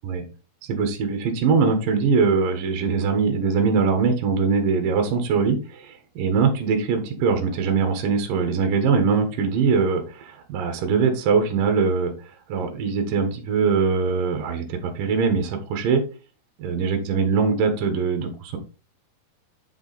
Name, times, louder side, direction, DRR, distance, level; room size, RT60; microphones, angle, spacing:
voice 1, 0.7-12.1 12.5-16.0 16.6-18.6, right 5 dB, 65° right, 5 dB, 2.7 m, -22 dB
8.2 x 4.8 x 4.0 m, 0.34 s
omnidirectional pair, 4.5 m